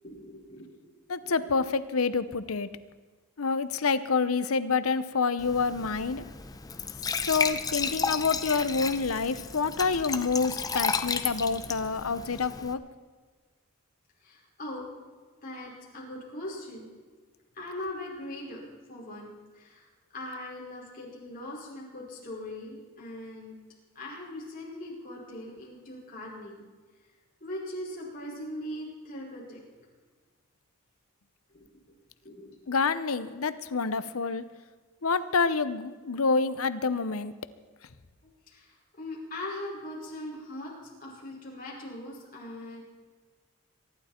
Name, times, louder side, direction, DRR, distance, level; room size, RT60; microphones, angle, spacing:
voice 1, 0.0-0.6 1.2-1.5 14.2-14.8 15.4-16.9 17.5-18.6 18.9-19.3 19.5-23.6 24.0-26.7 27.4-29.6 31.5-31.7 32.2-32.6 38.5-40.7 41.0-42.8, left 1 dB, 40° left, -4 dB, 5.4 m, -40 dB
voice 2, 1.1-2.7 3.4-6.2 7.3-12.8 32.7-34.4 35.0-37.3, left 4 dB, 75° left, 13 dB, 0.8 m, -27 dB
Glass / Trickle dribble / Fill (with liquid), 5.4-12.7, left 5 dB, 15° left, 0.6 m, -33 dB
23.5 x 11.5 x 4.4 m, 1.5 s
head